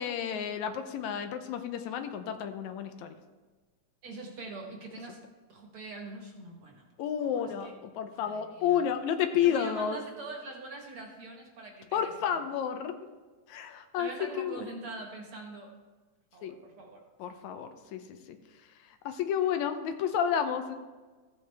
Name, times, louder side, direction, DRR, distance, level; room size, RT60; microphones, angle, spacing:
voice 1, 0.0-3.2 7.0-10.0 11.9-12.9 13.5-14.1 14.3-14.7 16.4-16.6 17.2-18.4 19.1-20.8, left 8 dB, 80° left, 8 dB, 2.0 m, -31 dB
voice 2, 4.0-5.2 5.5-6.9 7.2-7.7 8.1-8.8 9.4-12.4 14.0-15.7 16.3-17.0, right 3 dB, 55° right, 0 dB, 2.0 m, -43 dB
15.0 x 8.3 x 3.4 m, 1.3 s
omnidirectional pair, 3.4 m